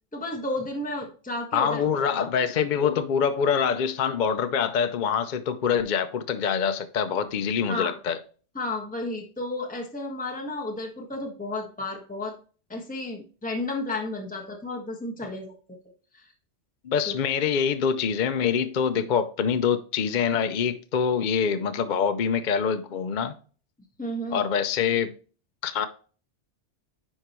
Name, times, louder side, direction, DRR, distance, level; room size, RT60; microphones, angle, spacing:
voice 1, 0.1-1.8 2.4-2.5 7.7-7.9 8.5-12.4 12.7-15.5 16.1-16.3 17.1-17.2 18.9-19.1 24.0-24.4, left 2 dB, 5° left, 1.4 m, -32 dB
voice 2, 1.5-8.2 16.8-23.3 24.3-25.1 25.6-25.9, left 7 dB, 50° left, 0.6 m, -25 dB
10.0 x 4.8 x 3.0 m
omnidirectional pair, 1.2 m